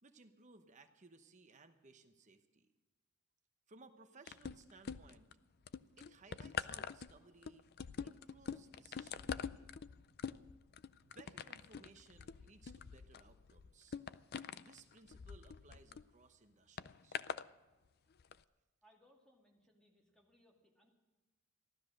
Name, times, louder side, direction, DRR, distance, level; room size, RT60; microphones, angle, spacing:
voice 1, 0.0-2.7 3.7-5.3 6.0-7.7 8.0-9.7 11.0-14.0 14.6-17.2, right 3 dB, 35° right, 7 dB, 0.9 m, -62 dB
sound 1, 4.3-5.3 5.7-16.0 16.8-17.5 18.2-18.3, left 6 dB, 45° left, 0.4 m, -45 dB
voice 2, 18.8-20.9, equal, 5° left, 0 dB, 2.4 m, -70 dB
15.5 x 12.0 x 6.4 m, 1.2 s
head